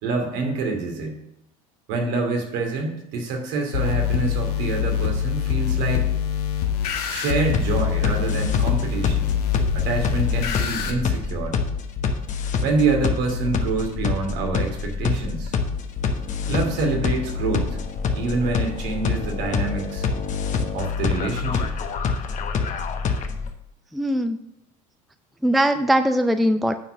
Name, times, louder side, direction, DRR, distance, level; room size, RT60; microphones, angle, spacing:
voice 1, 0.0-1.2 1.9-6.1 7.1-9.3 9.7-11.6 12.6-15.6 16.5-17.8 18.1-20.1 20.7-21.7, right 3 dB, 65° right, 2 dB, 2.4 m, -26 dB
sound 1, 3.7-10.9, left 9 dB, 85° left, 1.3 m, -24 dB
sound 2, 7.5-23.5, left 5 dB, 40° left, 1.2 m, -26 dB
voice 2, 23.9-24.4 25.4-26.8, equal, ahead, 9 dB, 0.4 m, -20 dB
9.0 x 4.6 x 6.3 m, 0.81 s
hypercardioid pair, 90°, 19 cm